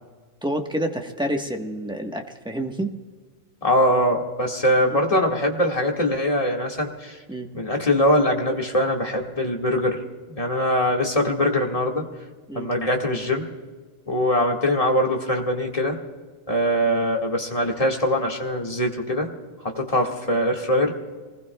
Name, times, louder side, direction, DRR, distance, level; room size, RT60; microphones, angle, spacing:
voice 1, 0.4-2.9 4.9-5.0 7.3-7.5 12.5-12.7, right 1 dB, 5° right, 3 dB, 1.1 m, -28 dB
voice 2, 3.6-7.2 7.5-10.0 10.3-12.1 12.5-13.5 14.1-16.0 16.5-19.3 19.6-20.9, equal, 25° left, 0 dB, 1.8 m, -22 dB
26.0 x 20.0 x 2.3 m, 1.5 s
omnidirectional pair, 1.4 m